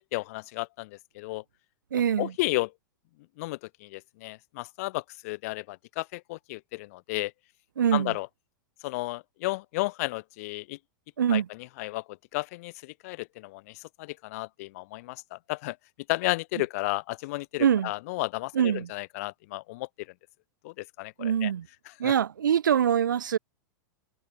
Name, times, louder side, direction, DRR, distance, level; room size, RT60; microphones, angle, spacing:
voice 1, 0.0-1.4 2.2-2.7 3.4-7.3 7.9-8.3 8.8-10.8 11.3-11.4 11.8-15.8 16.1-19.9 20.6-21.5 22.0-22.1, left 21 dB, 45° left, 0.4 m, -33 dB
voice 2, 1.9-2.3 7.8-8.2 11.2-11.5 17.6-17.9 18.5-18.9 21.2-21.7 22.0-23.4, right 9 dB, 70° right, 0.6 m, -24 dB
figure-of-eight pair, 95°, 11 cm